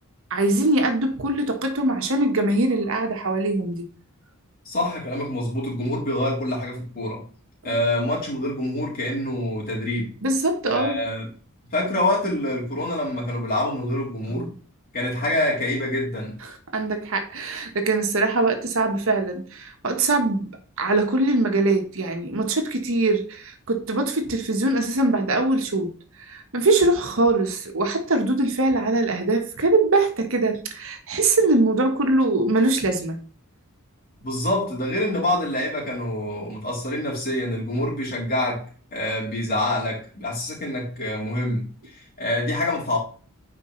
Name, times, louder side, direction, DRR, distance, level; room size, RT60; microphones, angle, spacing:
voice 1, 0.3-3.9 7.6-7.8 10.2-11.0 14.3-14.5 16.4-20.5 20.8-25.9 26.2-33.2, right 2 dB, 65° right, 1.4 m, -22 dB
voice 2, 4.7-7.2 7.6-10.1 10.6-11.3 11.7-14.5 14.9-16.4 34.2-38.7 38.9-43.0, left 1 dB, 40° left, 3.7 m, -26 dB
9.9 x 4.9 x 3.2 m
head